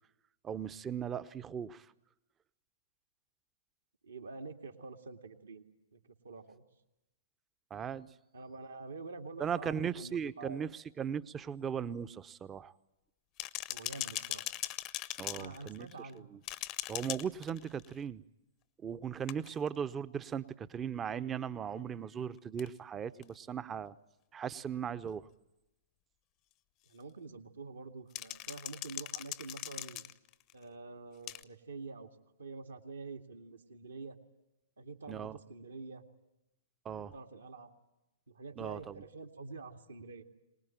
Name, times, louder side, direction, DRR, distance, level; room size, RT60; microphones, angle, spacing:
voice 1, 0.4-1.9 7.7-8.1 9.4-12.7 15.2-15.9 16.3-16.4 16.9-18.2 18.8-24.0 24.3-25.3 35.1-35.4 36.8-37.1 38.6-39.0, right 7 dB, 20° right, 16 dB, 0.8 m, -38 dB
voice 2, 4.0-5.6 5.9-6.6 8.3-10.6 13.7-14.4 15.3-16.3 26.9-30.0 30.5-32.1 32.4-34.2 34.8-36.1 37.1-37.7 38.3-40.2, right 3 dB, 70° right, 4 dB, 2.3 m, -47 dB
sound 1, 13.4-16.1 16.4-17.9 19.3-19.7 22.6-22.7 23.2-23.3 25.1-25.2 28.2-30.5 31.3-31.4, left 16 dB, 30° left, 0.9 m, -40 dB
24.0 x 20.0 x 9.1 m, 0.95 s
figure-of-eight pair, 110°, 0 cm